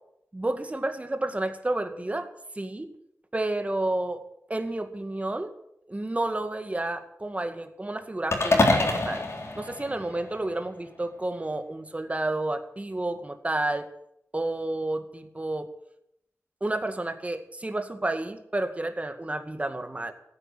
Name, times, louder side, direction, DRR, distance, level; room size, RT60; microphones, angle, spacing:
voice 1, 0.3-2.3 2.6-2.9 3.3-4.2 4.5-5.5 5.9-9.3 9.6-13.9 14.3-15.7 16.6-20.1, right 2 dB, 25° right, 8 dB, 2.0 m, -30 dB
sound 1, 8.3-10.6, left 2 dB, 60° left, 3.6 m, -25 dB
15.5 x 9.9 x 9.1 m, 0.78 s
cardioid pair, 60°, 5 cm